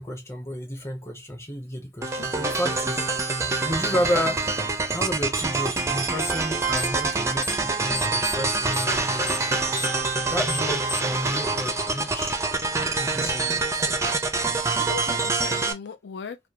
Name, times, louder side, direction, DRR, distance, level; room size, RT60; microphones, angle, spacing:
voice 1, 0.0-3.4 3.6-4.4 4.9-9.4 10.3-12.4 13.0-14.0, equal, 15° left, 0.9 m, -31 dB
sound 1, 2.0-15.7, right 3 dB, 15° right, 0.4 m, -26 dB
voice 2, 2.2-2.5 10.0-10.4 14.8-16.4, left 6 dB, 75° left, 0.5 m, -38 dB
sound 2, 6.2-6.5 6.7-7.7 7.9-11.2, left 2 dB, 50° left, 0.9 m, -33 dB
2.5 x 2.2 x 2.8 m
head